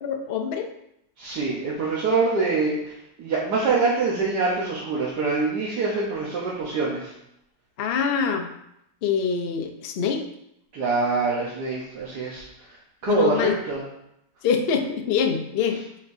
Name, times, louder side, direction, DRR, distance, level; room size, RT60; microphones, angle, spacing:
voice 1, 0.0-0.7 7.8-8.5 9.0-10.2 13.1-13.5 14.4-15.8, left 6 dB, 65° left, 4 dB, 0.5 m, -24 dB
voice 2, 1.2-7.1 10.7-12.5 13.0-13.8, right 4 dB, 70° right, -5 dB, 1.5 m, -25 dB
8.3 x 4.3 x 2.7 m, 0.80 s
omnidirectional pair, 1.9 m